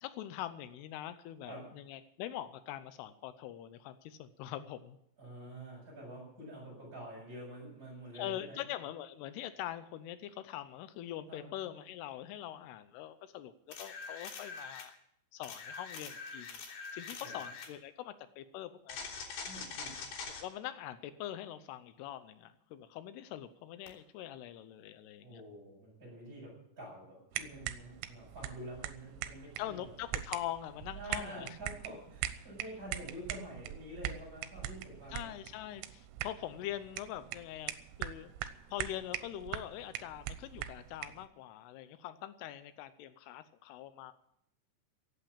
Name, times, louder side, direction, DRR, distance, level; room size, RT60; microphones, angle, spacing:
voice 1, 0.0-5.0 8.1-15.0 15.3-16.6 16.9-19.0 20.3-25.4 29.6-31.5 35.1-37.7 38.0-38.3 38.7-44.1, left 12 dB, 90° left, 12 dB, 2.3 m, -43 dB
voice 2, 5.2-8.6 11.3-11.5 17.2-17.4 19.4-20.0 25.2-29.9 30.9-35.3, right 1 dB, 15° right, -5 dB, 8.3 m, -47 dB
sound 1, 13.7-14.9 15.4-17.7 18.9-20.4 23.9-24.0, left 5 dB, 55° left, 5.1 m, -44 dB
sound 2, 27.3-41.3, right 12 dB, 80° right, 3.3 m, -42 dB
16.0 x 8.6 x 8.8 m, 0.75 s
omnidirectional pair, 5.6 m